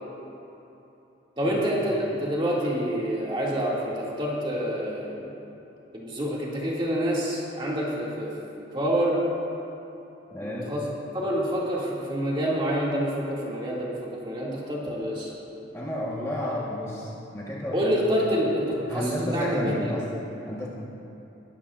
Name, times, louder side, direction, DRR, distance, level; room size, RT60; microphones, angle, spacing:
voice 1, 1.4-5.3 5.9-8.3 8.7-9.2 10.4-10.8 11.1-15.3 17.7-19.9, equal, 25° right, -5 dB, 2.3 m, -27 dB
voice 2, 10.3-10.7 15.7-17.8 18.9-20.1 20.5-20.7, left 1 dB, 15° left, -5 dB, 1.3 m, -31 dB
21.0 x 12.0 x 2.5 m, 2.9 s
head